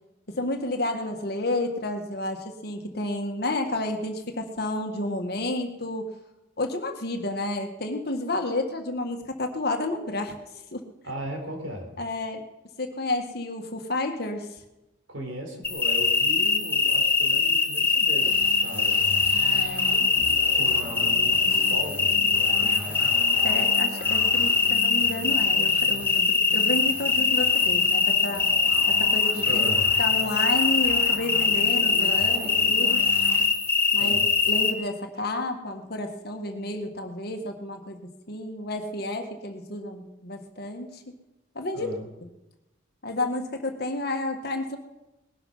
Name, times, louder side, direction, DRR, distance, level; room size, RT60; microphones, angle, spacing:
voice 1, 0.3-6.1 6.6-10.3 10.7-10.8 12.0-12.4 12.8-14.6 19.3-20.1 23.4-28.5 28.9-29.7 30.0-33.0 33.9-34.2 34.5-38.0 38.3-41.0 41.6-41.9 43.0-44.8, left 2 dB, 55° left, 4 dB, 1.7 m, -31 dB
voice 2, 11.0-11.9 15.1-19.2 20.5-23.1 29.5-29.9 34.0-34.3 41.7-42.1, equal, 85° right, 2 dB, 4.0 m, -37 dB
sound 1, 15.6-34.7, left 4 dB, 10° left, 1.0 m, -22 dB
sound 2, 18.2-33.5, equal, 10° right, 2.6 m, -40 dB
20.0 x 11.5 x 5.6 m, 0.98 s
head